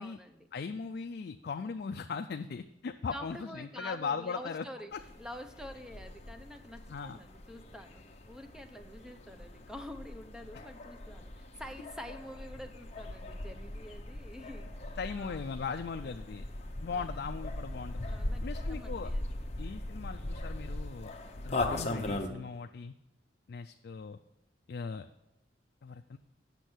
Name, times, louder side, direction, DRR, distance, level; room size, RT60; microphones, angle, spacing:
voice 1, 0.0-0.5 3.1-4.9 5.2-15.5 16.0-16.1 16.9-17.1 18.0-19.2, left 1 dB, 5° right, 7 dB, 0.5 m, -47 dB
voice 2, 0.5-4.6 4.9-5.0 6.9-7.2 15.0-16.4 16.8-18.1 18.4-19.1 19.6-21.1 21.4-22.9 23.5-24.2 24.7-25.1 25.8-26.2, left 5 dB, 55° left, 6 dB, 0.3 m, -38 dB
sound 1, 4.9-22.3, left 1 dB, 35° left, 0.8 m, -40 dB
8.3 x 6.3 x 6.1 m, 0.88 s
head